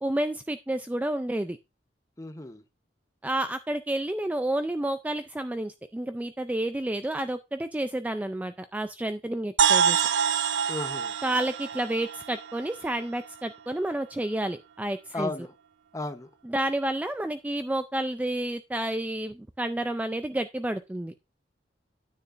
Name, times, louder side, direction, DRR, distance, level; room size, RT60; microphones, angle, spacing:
voice 1, 0.0-1.6 3.2-10.0 11.2-15.3 16.4-21.1, right 1 dB, 10° right, 0.3 m, -30 dB
voice 2, 2.2-2.6 10.7-11.1 15.1-15.5 15.9-16.3, left 2 dB, 20° left, 0.9 m, -34 dB
sound 1, 9.6-13.3, right 7 dB, 80° right, 0.5 m, -26 dB
9.7 x 9.0 x 2.5 m
head